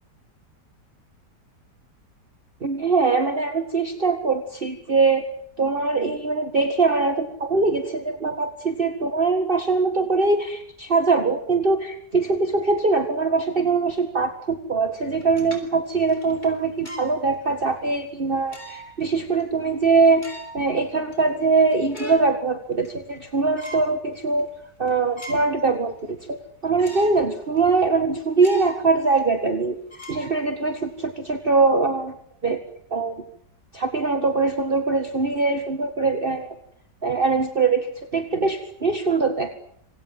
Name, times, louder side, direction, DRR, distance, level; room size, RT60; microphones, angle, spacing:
voice 1, 2.6-5.3 5.6-24.5 24.8-29.8 30.1-32.1 32.4-32.6 32.9-33.2 33.7-36.6 37.0-39.6, right 4 dB, 30° right, 8 dB, 2.0 m, -22 dB
sound 1, 15.1-17.2 17.7-17.8 18.5-19.0 19.4-19.5 20.0-20.7 21.1-21.2 21.6-22.3 22.7-23.2 23.5-23.9 24.4-24.5 24.9-25.6 26.0-26.1 26.8-27.2 27.6-27.7 28.4-28.9 29.2-29.3 29.9-30.9, equal, 25° left, 6.3 m, -40 dB
26.5 x 26.5 x 7.6 m, 0.68 s
omnidirectional pair, 1.9 m